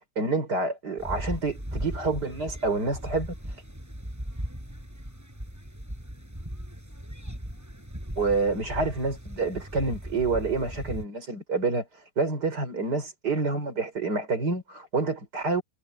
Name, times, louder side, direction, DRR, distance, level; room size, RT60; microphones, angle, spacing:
voice 1, 0.2-3.3 8.2-11.9 12.2-15.6, right 3 dB, 80° right, 5.5 m, -28 dB
sound 1, 1.0-11.0, equal, 10° right, 6.6 m, -38 dB
omnidirectional pair, 1.8 m